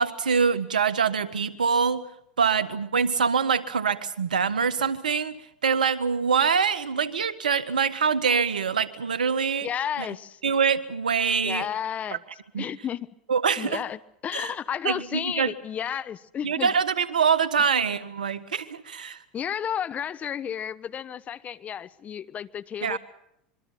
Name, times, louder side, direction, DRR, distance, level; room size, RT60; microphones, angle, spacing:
voice 1, 0.0-2.0 2.4-5.3 5.6-9.7 10.0-10.1 10.4-11.7 12.5-12.6 13.3-13.8 14.3-14.5 14.8-15.5 16.4-19.2 22.8-23.0, right 6 dB, 90° right, 1.5 m, -24 dB
voice 2, 9.6-10.4 11.4-12.2 12.5-13.1 13.6-16.7 19.3-23.0, left 9 dB, 35° left, 1.2 m, -32 dB
26.0 x 23.5 x 5.8 m
hypercardioid pair, 90°, 4 cm